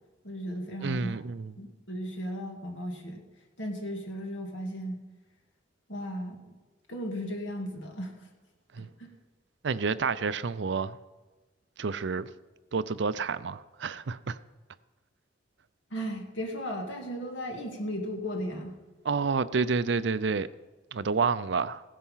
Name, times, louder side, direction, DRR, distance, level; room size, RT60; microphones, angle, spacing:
voice 1, 0.2-1.2 1.6-3.2 3.6-5.0 5.9-6.4 6.9-8.2 8.8-9.1 15.9-18.8, equal, 80° left, 2.4 m, -36 dB
voice 2, 0.8-1.5 8.7-8.9 9.6-11.0 11.8-12.3 12.7-14.4 19.0-20.5 20.9-21.8, right 4 dB, 65° right, 0.5 m, -29 dB
16.5 x 10.5 x 5.7 m
head